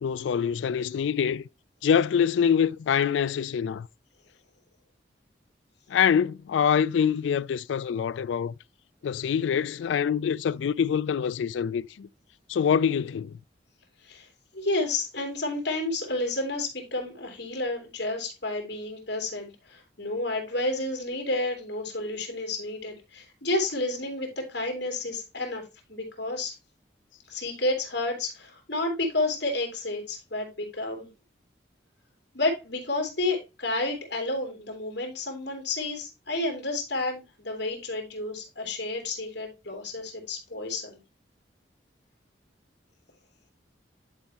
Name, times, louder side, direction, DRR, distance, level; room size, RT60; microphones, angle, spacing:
voice 1, 0.0-1.4 1.8-3.9 5.9-8.5 9.0-12.1 12.5-13.4, left 7 dB, 90° left, 0.3 m, -25 dB
voice 2, 14.5-25.6 25.9-26.5 27.3-31.1 32.3-41.0, left 2 dB, 65° left, 2.9 m, -30 dB
11.0 x 4.5 x 2.9 m
head